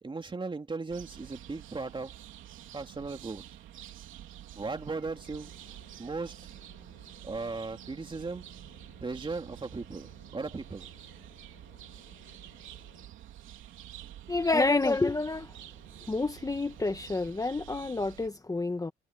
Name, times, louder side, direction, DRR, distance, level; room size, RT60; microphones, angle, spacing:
voice 1, 0.0-2.1 2.7-3.4 4.6-5.5 6.0-6.3 7.2-8.4 9.0-10.9, right 3 dB, 25° right, 3.0 m, -37 dB
sound 1, 0.9-18.3, right 12 dB, 85° right, 3.2 m, -49 dB
sound 2, 5.1-13.0, left 13 dB, 85° left, 4.8 m, -61 dB
voice 2, 14.3-15.5 16.1-18.9, left 3 dB, 15° left, 1.3 m, -28 dB
cardioid pair, 90°, 20 cm